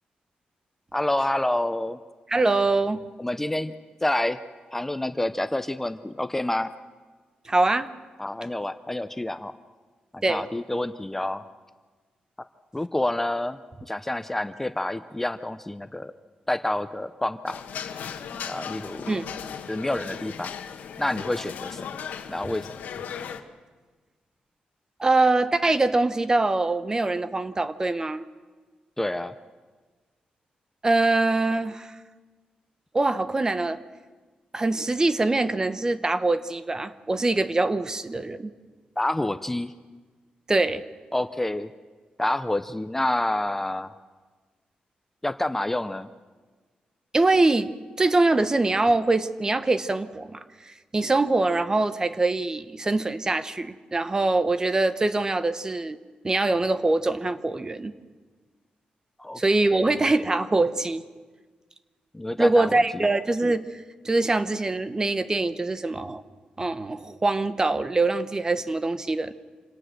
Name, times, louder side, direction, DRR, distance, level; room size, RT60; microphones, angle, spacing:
voice 1, 0.9-2.0 3.2-3.7 4.0-4.4 4.7-6.7 8.2-9.5 10.1-11.4 12.7-16.1 16.5-17.6 18.4-19.1 19.7-20.5 21.0-22.0 22.3-22.8 29.0-29.4 39.0-39.7 41.1-41.7 42.2-43.9 45.2-46.1 59.2-60.0 62.1-63.1, left 1 dB, 10° left, 11 dB, 0.6 m, -28 dB
voice 2, 2.3-3.0 7.5-7.9 10.2-10.4 19.1-19.3 25.0-28.3 30.8-31.9 32.9-33.8 34.5-38.5 40.5-40.8 47.1-47.7 48.0-56.0 56.2-57.9 59.4-61.0 62.4-63.7 64.0-66.2 66.6-69.3, right 2 dB, 25° right, 13 dB, 0.9 m, -23 dB
sound 1, 17.5-23.4, left 7 dB, 85° left, 1.3 m, -37 dB
26.5 x 17.5 x 6.6 m, 1.4 s
cardioid pair, 105°, 3 cm